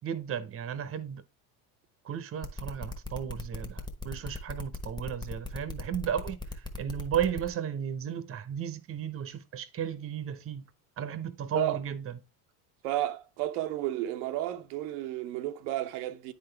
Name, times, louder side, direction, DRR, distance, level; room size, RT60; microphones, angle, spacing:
voice 1, 0.0-1.2 2.0-10.7 11.0-12.2, right 8 dB, 30° right, 0.8 m, -34 dB
sound 1, 2.4-7.5, left 3 dB, 10° left, 1.1 m, -38 dB
voice 2, 12.8-16.3, right 14 dB, 80° right, 0.7 m, -32 dB
9.6 x 3.9 x 3.3 m
supercardioid pair, 100°, 44 cm